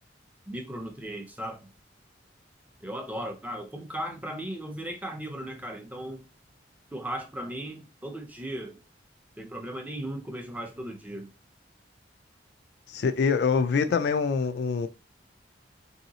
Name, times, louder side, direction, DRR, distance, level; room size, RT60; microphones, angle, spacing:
voice 1, 0.5-1.7 2.8-6.2 6.9-8.8 9.4-11.3, right 1 dB, 10° right, 0.5 m, -37 dB
voice 2, 12.9-14.9, left 5 dB, 60° left, 0.3 m, -25 dB
3.1 x 2.8 x 2.7 m
head